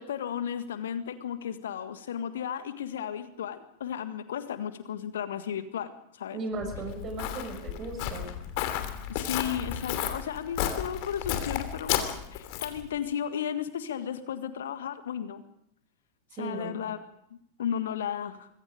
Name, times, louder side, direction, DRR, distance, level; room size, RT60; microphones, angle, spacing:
voice 1, 0.0-6.4 9.1-15.4 16.4-17.1 17.6-18.5, left 9 dB, 60° left, 11 dB, 1.6 m, -34 dB
voice 2, 6.3-8.3 16.3-16.8, right 3 dB, 30° right, 5 dB, 7.0 m, -36 dB
Walk footsteps, 6.6-12.9, left 11 dB, 45° left, 2.9 m, -33 dB
25.0 x 22.0 x 5.1 m, 0.73 s
figure-of-eight pair, 90°, 0 cm